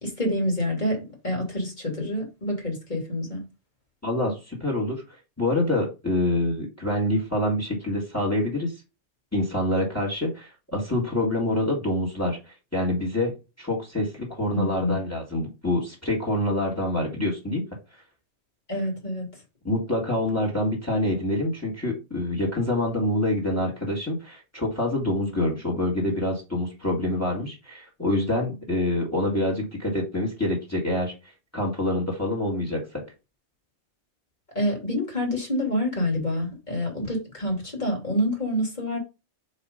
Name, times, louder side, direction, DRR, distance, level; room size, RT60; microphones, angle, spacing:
voice 1, 0.0-3.4 14.5-15.0 18.7-19.3 34.5-39.0, left 1 dB, 40° left, 2.7 m, -27 dB
voice 2, 4.0-5.0 5.4-8.7 9.3-17.6 19.6-31.1 31.5-33.0, left 1 dB, 15° left, 2.4 m, -26 dB
5.3 x 4.3 x 5.2 m
omnidirectional pair, 1.1 m